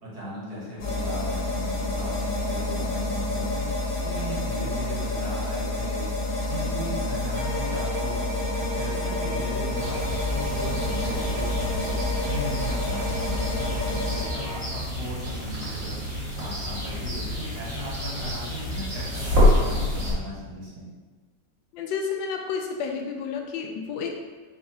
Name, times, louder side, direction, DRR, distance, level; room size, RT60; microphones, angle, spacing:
voice 1, 0.0-3.6 4.0-6.1 6.5-8.2 8.6-11.9 12.3-16.0 16.4-20.9, equal, 60° right, -7 dB, 1.8 m, -37 dB
sound 1, 0.8-14.2, left 2 dB, 60° left, 1.3 m, -29 dB
sound 2, 7.3-14.7, right 2 dB, 90° right, 0.5 m, -37 dB
sound 3, 9.8-20.1, left 1 dB, 40° right, 1.7 m, -28 dB
voice 2, 21.7-24.2, left 6 dB, 90° left, 2 dB, 1.3 m, -31 dB
4.7 x 3.8 x 2.6 m, 1.3 s
omnidirectional pair, 2.0 m